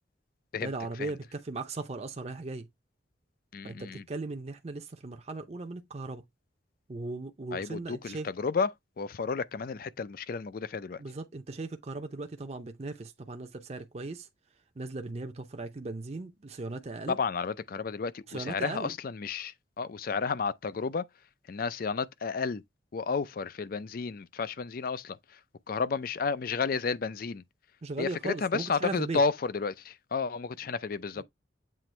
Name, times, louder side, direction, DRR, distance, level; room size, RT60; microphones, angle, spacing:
voice 1, 0.6-2.7 3.6-6.2 6.9-8.3 11.0-14.3 14.8-17.2 18.3-18.9 27.8-29.2 31.2-31.3, right 3 dB, 35° right, 0.6 m, -38 dB
voice 2, 3.5-4.0 7.5-8.7 9.0-11.0 17.1-21.0 21.5-22.6 22.9-25.4 25.7-27.4 28.0-31.2, left 5 dB, 50° left, 0.4 m, -32 dB
7.7 x 3.0 x 4.3 m
head